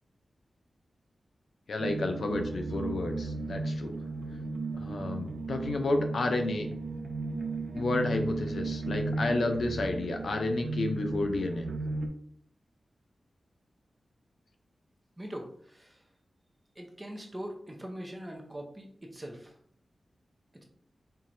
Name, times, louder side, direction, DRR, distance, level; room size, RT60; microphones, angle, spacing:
voice 1, 1.7-3.9 4.7-6.7 7.7-11.7, left 2 dB, 65° left, 5 dB, 0.5 m, -31 dB
sound 1, 1.8-12.1, right 3 dB, 60° right, 0.5 m, -35 dB
voice 2, 15.2-16.0 16.8-19.6, right 1 dB, 15° right, 1 dB, 0.6 m, -42 dB
4.5 x 3.0 x 2.6 m, 0.62 s
wide cardioid pair, 165°, 0 cm